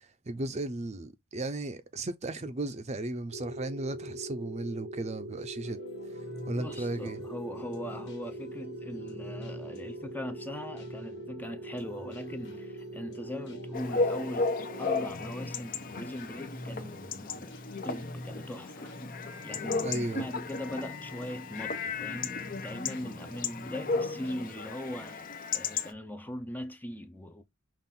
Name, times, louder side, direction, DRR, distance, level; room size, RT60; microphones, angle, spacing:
voice 1, 0.3-5.8 6.5-7.2 19.8-20.2, right 2 dB, 35° right, 0.6 m, -35 dB
sound 1, 3.3-15.1, right 1 dB, 75° right, 0.7 m, -42 dB
sound 2, 5.6-24.5, left 1 dB, 60° left, 1.5 m, -47 dB
voice 2, 6.5-14.5 14.8-17.6 17.8-18.9 19.4-25.2 25.5-27.4, left 1 dB, 10° left, 0.5 m, -40 dB
Chatter / Bark / Livestock farm animals working animals, 13.7-25.9, left 4 dB, 45° left, 0.7 m, -35 dB
5.7 x 2.5 x 3.7 m
head